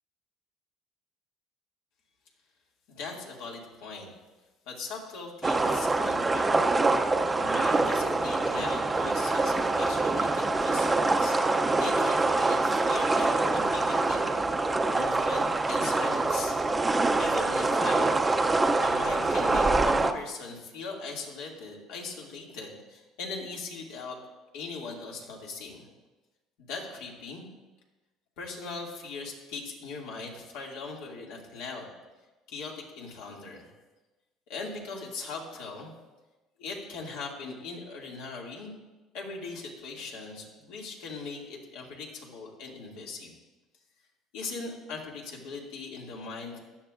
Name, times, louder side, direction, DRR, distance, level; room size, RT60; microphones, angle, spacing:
voice 1, 2.9-4.1 4.7-6.8 7.4-14.3 14.9-16.6 17.2-18.2 18.8-24.2 24.5-25.9 26.6-27.5 28.4-31.9 32.5-33.7 34.5-35.9 36.6-38.7 39.1-43.3 44.3-46.6, left 4 dB, 80° left, -1 dB, 2.5 m, -40 dB
wave ripple, 5.4-20.1, right 3 dB, 15° right, 0.5 m, -25 dB
16.0 x 11.0 x 2.5 m, 1.1 s
cardioid pair, 130°, 0 cm